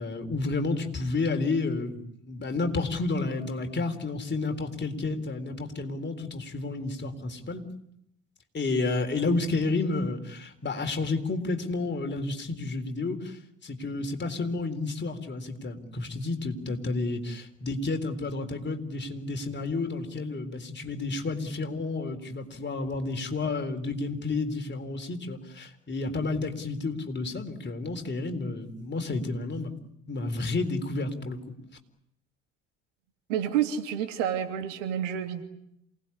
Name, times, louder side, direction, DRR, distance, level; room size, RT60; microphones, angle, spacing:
voice 1, 0.0-2.0 2.3-7.6 8.5-29.7 30.1-31.6, left 3 dB, 30° left, 6 dB, 4.0 m, -31 dB
voice 2, 33.3-35.4, right 9 dB, 75° right, 6 dB, 2.9 m, -29 dB
28.0 x 19.5 x 9.9 m, 0.77 s
figure-of-eight pair, 60°, 38 cm